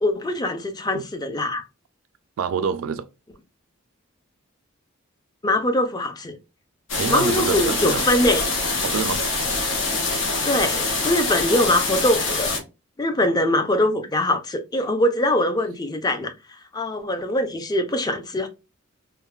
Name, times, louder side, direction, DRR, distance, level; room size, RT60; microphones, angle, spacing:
voice 1, 0.0-1.6 5.4-6.4 7.1-8.5 10.4-12.6 13.0-18.5, left 1 dB, 20° left, 0.4 m, -22 dB
voice 2, 2.4-3.1 7.0-8.0 8.8-9.2, right 6 dB, 75° right, 0.3 m, -26 dB
sound 1, 6.9-12.6, left 3 dB, 65° left, 0.8 m, -24 dB
3.0 x 2.1 x 2.2 m
head